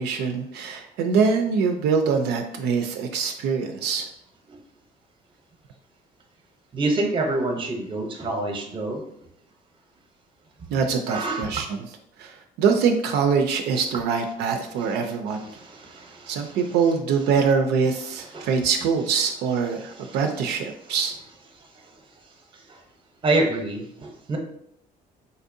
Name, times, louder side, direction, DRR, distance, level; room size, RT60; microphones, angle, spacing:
voice 1, 0.0-4.1 10.7-11.8 12.2-15.5 16.3-21.1, right 5 dB, 80° right, 4 dB, 0.4 m, -24 dB
voice 2, 6.7-9.0 10.6-10.7 11.1-11.6 14.8-14.9 15.3-16.8 18.2-18.7 19.9-20.2 21.6-22.0 22.5-22.8 23.2-24.4, right 2 dB, 30° right, 3 dB, 0.7 m, -28 dB
4.1 x 2.6 x 2.6 m, 0.73 s
cardioid pair, 110°, 17 cm